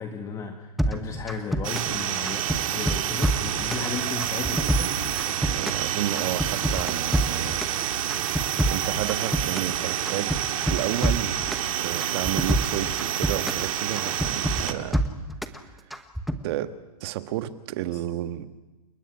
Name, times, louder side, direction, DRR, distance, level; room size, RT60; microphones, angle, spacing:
voice 1, 0.0-4.9 17.9-18.0, left 5 dB, 15° left, 5 dB, 1.6 m, -35 dB
sound 1, 0.8-2.0 2.2-3.9 4.2-5.9 6.1-7.8 8.1-9.8 10.1-11.7 12.0-13.7 14.0-15.6 15.9-16.4, right 1 dB, ahead, 1.1 m, -26 dB
sound 2, 1.6-14.7, right 11 dB, 55° right, 2.2 m, -28 dB
voice 2, 5.5-7.6 8.7-11.3 11.8-15.0 16.4-18.5, right 13 dB, 40° right, 10 dB, 1.6 m, -31 dB
29.0 x 16.0 x 9.8 m, 1.1 s
hypercardioid pair, 150°, 20 cm